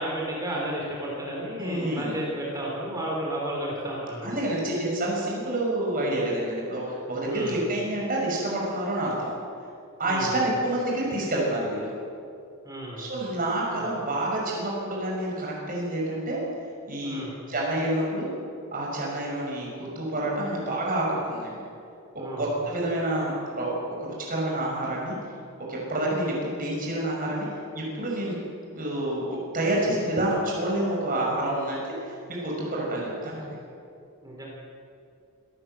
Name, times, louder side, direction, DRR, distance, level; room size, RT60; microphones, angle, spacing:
voice 1, 0.0-4.4 7.2-7.6 10.0-10.4 12.6-13.1 13.8-13.9 17.0-17.3 22.2-22.5 34.2-34.5, right 1 dB, 15° right, -3 dB, 4.0 m, -32 dB
voice 2, 1.6-2.1 4.2-9.4 10.0-11.9 13.0-16.4 16.9-17.2 17.5-18.3 18.7-21.6 22.4-23.7 24.0-25.2 25.7-27.5 27.7-28.3 28.7-33.6, right 1 dB, 40° right, -3 dB, 6.0 m, -28 dB
26.5 x 14.0 x 7.8 m, 2.5 s
head